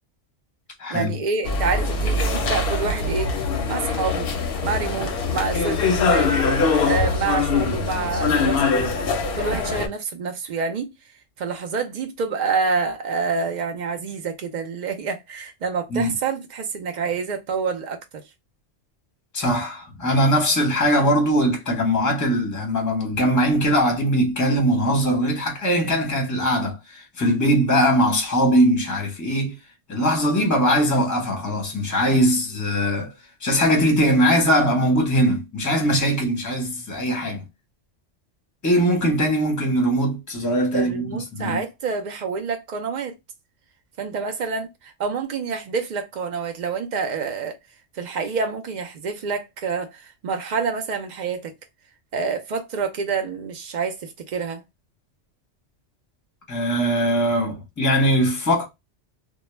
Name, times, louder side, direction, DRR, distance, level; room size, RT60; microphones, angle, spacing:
voice 1, 0.9-3.3 3.7-4.3 4.6-6.3 6.8-8.9 9.4-10.9 11.4-18.2 40.7-43.1 44.0-47.6 47.9-51.5 52.1-54.6, right 5 dB, 70° right, 0.4 m, -27 dB
sound 1, 1.5-9.9, left 4 dB, 60° left, 0.7 m, -23 dB
voice 2, 19.3-29.5 29.9-33.1 33.4-37.4 38.6-41.6 56.5-58.7, equal, 20° left, 0.6 m, -21 dB
2.2 x 2.0 x 3.0 m
omnidirectional pair, 1.3 m